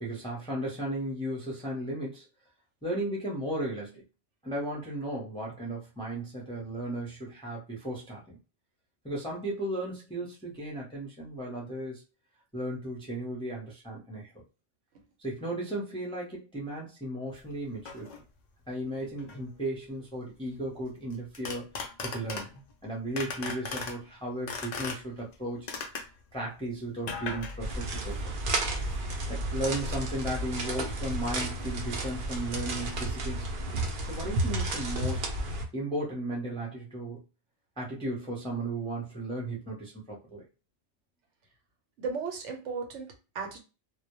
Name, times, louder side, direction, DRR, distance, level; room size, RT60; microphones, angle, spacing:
voice 1, 0.0-2.2 2.8-4.0 4.4-8.4 9.0-12.0 12.5-14.3 15.2-18.1 18.7-21.8 22.0-25.7 26.3-28.3 29.3-33.5 34.1-35.3 35.7-37.2 37.8-40.4, right 1 dB, 5° left, -4 dB, 0.5 m, -35 dB
sound 1, 17.3-17.4 17.9-18.2 19.2-19.5 21.1-22.7 23.2-24.0 24.5-25.3 25.7-26.2 27.0-28.4 28.6-29.1, left 4 dB, 70° left, 0.4 m, -38 dB
sound 2, 27.6-35.6, right 1 dB, 55° right, 0.6 m, -32 dB
voice 2, 42.0-43.6, right 5 dB, 75° right, 4 dB, 1.0 m, -35 dB
2.2 x 2.0 x 2.9 m, 0.31 s
omnidirectional pair, 1.3 m